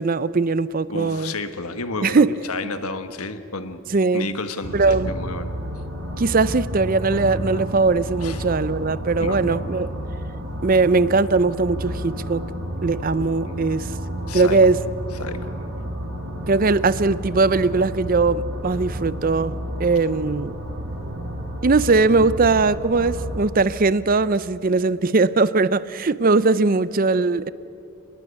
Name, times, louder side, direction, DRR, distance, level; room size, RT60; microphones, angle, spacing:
voice 1, 0.0-1.3 2.0-2.3 3.9-4.3 4.7-5.1 6.2-9.9 10.6-12.5 12.8-14.0 14.3-14.8 16.5-20.6 21.6-27.5, right 3 dB, 40° right, 0.5 m, -20 dB
voice 2, 0.9-3.8 4.1-5.5 8.2-8.4 9.2-9.6 13.4-13.6 14.3-14.6 15.2-15.7, left 3 dB, 85° left, 1.4 m, -31 dB
sound 1, 4.6-23.4, equal, 85° right, 5.2 m, -31 dB
25.5 x 20.5 x 8.2 m
head